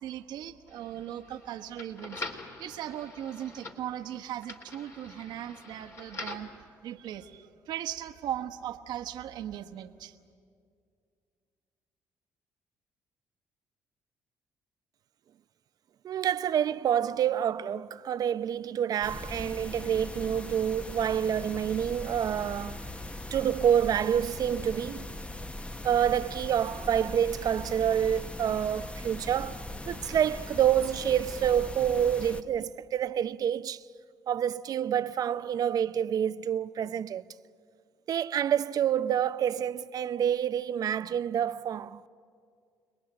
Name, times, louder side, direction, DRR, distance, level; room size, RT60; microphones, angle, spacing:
voice 1, 0.0-2.2 2.6-6.5 6.8-10.1, right 11 dB, 75° right, 1.2 m, -38 dB
sound 1, 0.7-6.6, left 3 dB, 40° left, 3.0 m, -44 dB
voice 2, 16.0-22.8 23.3-25.1 25.8-33.8 34.3-37.2 38.1-42.0, right 9 dB, 60° right, 0.6 m, -28 dB
sound 2, 19.0-32.4, left 1 dB, 15° left, 1.1 m, -40 dB
30.0 x 19.5 x 8.9 m
supercardioid pair, 65°, 7 cm